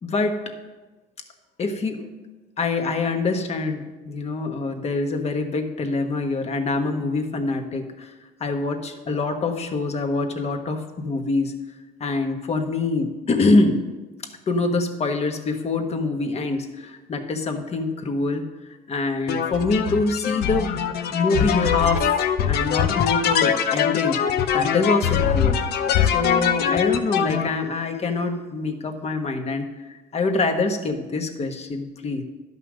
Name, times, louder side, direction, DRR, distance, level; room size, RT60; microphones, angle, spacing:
voice 1, 0.0-0.4 1.6-2.1 2.6-8.1 8.4-11.5 12.0-13.8 14.5-18.4 18.9-20.7 21.1-22.1 22.5-24.2 24.5-32.2, left 3 dB, 40° left, 5 dB, 1.3 m, -25 dB
sound 1, 19.3-27.5, left 8 dB, 70° left, 0.7 m, -22 dB
11.5 x 5.6 x 6.2 m, 1.2 s
cardioid pair, 110°, 17 cm